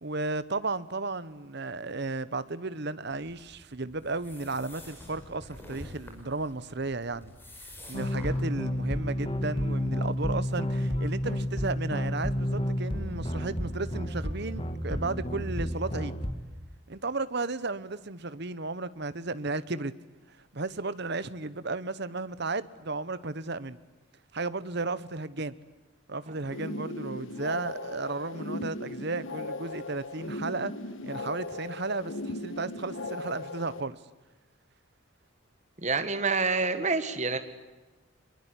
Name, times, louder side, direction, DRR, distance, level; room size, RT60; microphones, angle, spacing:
voice 1, 0.0-7.3 7.6-16.2 16.9-19.9 20.5-23.8 24.3-25.5 26.1-30.7 31.0-34.0, right 3 dB, 50° right, 1.1 m, -34 dB
sound 1, 3.1-8.4, left 1 dB, 10° left, 5.4 m, -48 dB
sound 2, 7.9-16.3, equal, 25° left, 1.9 m, -31 dB
sound 3, 26.4-33.8, left 2 dB, 65° left, 1.6 m, -38 dB
voice 2, 35.8-37.4, right 4 dB, 35° right, 1.7 m, -27 dB
24.5 x 22.5 x 9.8 m
head